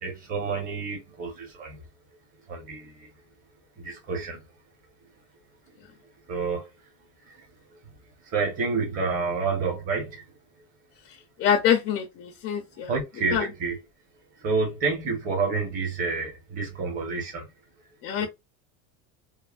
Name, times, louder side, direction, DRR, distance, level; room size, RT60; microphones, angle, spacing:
voice 1, 0.0-1.8 2.5-3.1 3.8-4.4 6.3-6.7 7.2-7.8 8.2-10.2 12.8-13.8 14.4-17.5 18.2-18.3, right 4 dB, 25° right, 0.9 m, -29 dB
voice 2, 11.4-12.9 13.3-13.5 18.0-18.3, left 9 dB, 30° left, 0.4 m, -25 dB
3.2 x 2.1 x 2.4 m
cardioid pair, 165°, 35 cm